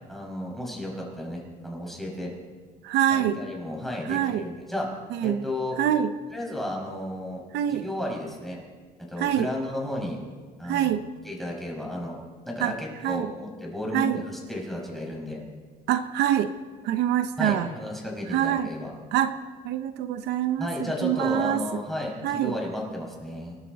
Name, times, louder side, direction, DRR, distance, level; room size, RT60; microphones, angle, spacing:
voice 1, 0.1-2.3 3.1-4.9 5.2-5.8 6.3-7.4 7.7-8.6 9.1-10.2 10.6-12.2 12.5-15.4 17.4-18.9 20.6-23.6, left 1 dB, ahead, -2 dB, 5.5 m, -33 dB
voice 2, 2.8-3.4 4.1-4.5 5.1-5.4 5.8-6.1 7.5-7.8 9.2-9.5 10.6-11.0 12.6-12.7 13.0-13.3 13.9-14.2 15.9-16.5 16.8-17.7 18.3-18.7 19.1-19.3 19.6-21.6 22.2-22.6, right 11 dB, 80° right, 10 dB, 0.8 m, -25 dB
27.0 x 12.5 x 4.1 m, 1.4 s
cardioid pair, 110°, 17 cm